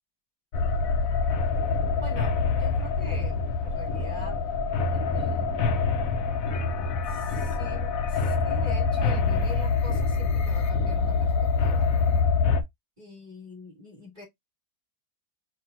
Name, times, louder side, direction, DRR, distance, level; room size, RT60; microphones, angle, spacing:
sound 1, 0.5-12.6, left 4 dB, 65° left, 1.1 m, -25 dB
voice 1, 2.0-4.4 4.9-5.5 7.1-12.1 13.0-14.2, left 3 dB, 30° right, 3.2 m, -45 dB
5.7 x 3.1 x 2.7 m
omnidirectional pair, 1.7 m